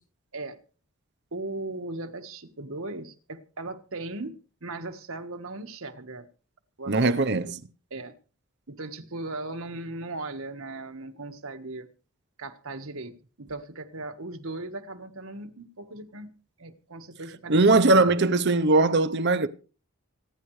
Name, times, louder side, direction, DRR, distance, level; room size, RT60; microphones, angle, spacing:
voice 1, 1.3-6.3 6.8-7.0 7.2-7.3 7.9-8.2 8.7-11.9 12.4-16.3 16.6-18.0, right 2 dB, 70° right, 1.5 m, -38 dB
voice 2, 6.9-7.6 17.5-19.5, right 3 dB, 50° right, 0.8 m, -20 dB
26.0 x 10.0 x 3.2 m
head